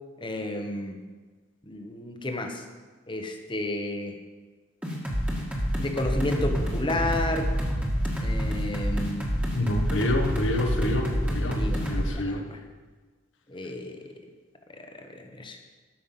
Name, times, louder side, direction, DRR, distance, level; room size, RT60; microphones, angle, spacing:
voice 1, 0.2-1.0 1.7-2.6 3.1-4.1 5.8-7.5 8.2-9.3 10.8-12.6 13.5-14.1 14.8-15.6, left 1 dB, 25° left, 4 dB, 1.1 m, -32 dB
sound 1, 4.8-12.1, equal, 5° right, 1.7 m, -27 dB
voice 2, 9.5-12.4, left 1 dB, 80° left, 3 dB, 1.5 m, -28 dB
13.5 x 5.9 x 5.7 m, 1.4 s
head